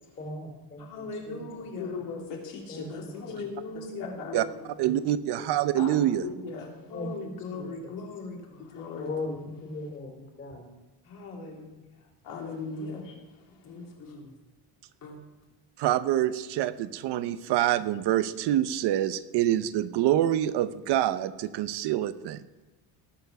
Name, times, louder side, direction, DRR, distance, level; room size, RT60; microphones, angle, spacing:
voice 1, 0.2-1.4 2.7-3.4 4.7-5.8 6.9-7.9 8.9-10.7, left 2 dB, 30° left, 1 dB, 2.9 m, -40 dB
voice 2, 0.8-2.1 3.2-4.7 6.9-8.8 11.0-12.1 12.7-13.0 13.6-14.3 15.0-15.2, left 3 dB, 50° left, 0 dB, 3.0 m, -40 dB
voice 3, 1.5-3.5 3.7-3.8 4.2-4.3 5.8-6.8 8.7-9.1 12.2-13.1, left 4 dB, 90° left, 0 dB, 3.2 m, -38 dB
voice 4, 4.8-6.2 15.8-22.4, right 12 dB, 70° right, 13 dB, 0.8 m, -26 dB
18.5 x 7.0 x 6.0 m, 1.1 s
cardioid pair, 165°, 42 cm